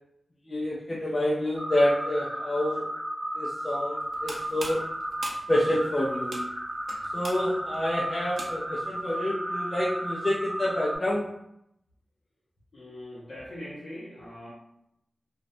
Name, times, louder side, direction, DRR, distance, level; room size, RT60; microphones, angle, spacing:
voice 1, 0.5-2.9 3.3-4.8 5.5-6.4 7.1-11.3, left 1 dB, 30° left, -6 dB, 0.5 m, -28 dB
sound 1, 1.6-11.0, right 1 dB, 5° right, 0.8 m, -34 dB
sound 2, 4.0-8.9, right 2 dB, 65° right, 0.5 m, -42 dB
voice 2, 12.7-14.5, left 1 dB, 80° left, -8 dB, 0.6 m, -41 dB
2.4 x 2.1 x 2.6 m, 0.78 s
wide cardioid pair, 60°, 0 cm